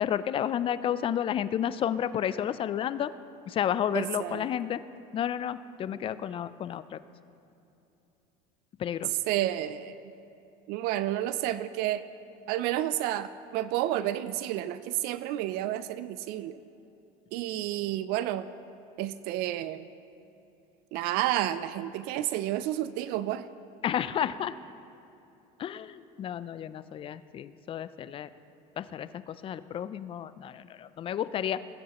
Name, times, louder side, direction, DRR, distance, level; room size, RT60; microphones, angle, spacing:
voice 1, 0.0-3.1 3.5-4.8 5.1-7.0 8.8-9.2 23.8-24.5 25.6-28.3 28.8-31.6, left 9 dB, 35° left, 15 dB, 0.4 m, -31 dB
voice 2, 3.9-4.4 9.3-10.0 10.7-12.0 12.5-16.6 17.3-18.5 19.0-19.9 20.9-23.5, right 13 dB, 70° right, 14 dB, 0.4 m, -30 dB
19.5 x 9.3 x 3.0 m, 2.8 s
cardioid pair, 120°, 17 cm